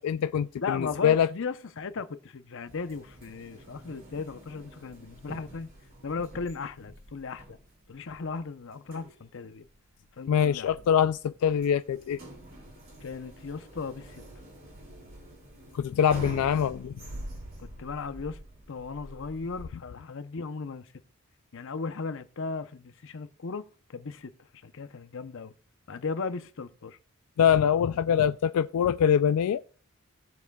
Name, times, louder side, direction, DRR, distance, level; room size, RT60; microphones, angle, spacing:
voice 1, 0.0-1.3 10.3-12.2 15.7-16.9 27.4-29.6, left 8 dB, 85° left, 0.3 m, -24 dB
voice 2, 0.6-5.7 6.0-7.6 7.9-9.7 10.2-10.8 13.0-14.2 17.6-18.4 18.7-20.9 21.5-23.6 23.9-25.5 25.9-27.0 27.8-28.0, left 4 dB, 60° left, 0.7 m, -36 dB
sound 1, 2.7-19.6, right 1 dB, 45° right, 2.6 m, -46 dB
17.0 x 7.0 x 2.3 m
head